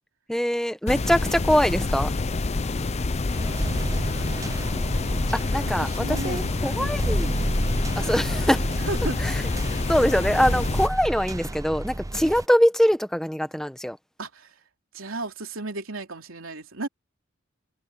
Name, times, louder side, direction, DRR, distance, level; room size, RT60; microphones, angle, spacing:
voice 1, 0.3-2.1 5.3-7.5 7.9-8.7 9.2-9.5 9.9-14.0, equal, ahead, 1.4 m, -23 dB
sound 1, 0.9-10.9, left 3 dB, 30° left, 0.6 m, -27 dB
sound 2, 3.3-12.4, right 1 dB, 15° right, 0.6 m, -31 dB
voice 2, 3.3-4.9 5.8-7.3 8.0-8.2 8.9-9.2 9.6-9.7 12.1-12.3 14.2-14.5 14.9-16.9, right 2 dB, 75° right, 3.3 m, -36 dB
head